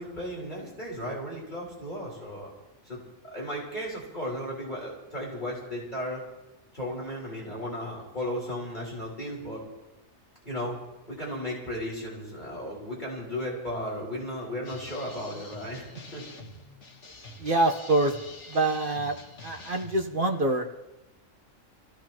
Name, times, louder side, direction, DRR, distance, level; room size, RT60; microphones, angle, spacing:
voice 1, 0.0-2.5 2.9-3.0 3.3-6.2 6.7-9.6 10.4-10.8 11.1-16.2, equal, 35° left, -5 dB, 4.1 m, -35 dB
sound 1, 14.6-20.2, left 2 dB, 60° left, 1.8 m, -46 dB
voice 2, 17.4-18.1 18.5-19.2 19.4-20.8, right 2 dB, 40° right, 3 dB, 1.3 m, -25 dB
27.0 x 15.5 x 3.0 m, 0.98 s
omnidirectional pair, 1.4 m